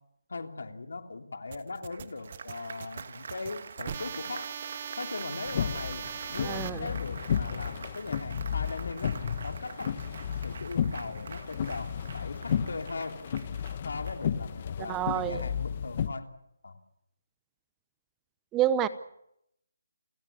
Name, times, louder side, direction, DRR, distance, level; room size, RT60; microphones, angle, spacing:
voice 1, 0.3-4.5 5.0-9.9 10.4-13.2 13.8-16.3 16.6-16.8, left 3 dB, 75° left, 6 dB, 3.1 m, -39 dB
sound 1, 1.5-6.7, right 8 dB, 40° right, 1.5 m, -40 dB
Applause, 1.9-14.6, right 5 dB, 55° right, 1.9 m, -46 dB
sound 2, 5.5-16.1, left 8 dB, 40° left, 1.4 m, -33 dB
voice 2, 6.4-6.9 14.8-15.4 18.5-18.9, right 11 dB, 15° right, 15 dB, 0.8 m, -28 dB
30.0 x 16.0 x 8.4 m, 0.79 s
figure-of-eight pair, 160°, 0 cm